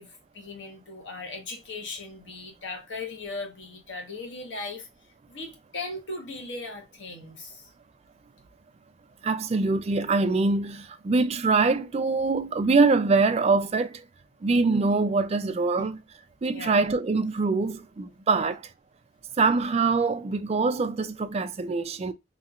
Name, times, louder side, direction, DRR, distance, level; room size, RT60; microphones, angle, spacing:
voice 1, 0.0-4.9 5.3-7.6 15.8-15.9 16.5-16.8 18.3-18.5, left 3 dB, 70° left, 1.2 m, -38 dB
voice 2, 9.2-14.0 14.4-16.0 16.4-18.6 19.4-22.1, right 3 dB, 35° right, 0.4 m, -24 dB
3.1 x 2.8 x 2.4 m
head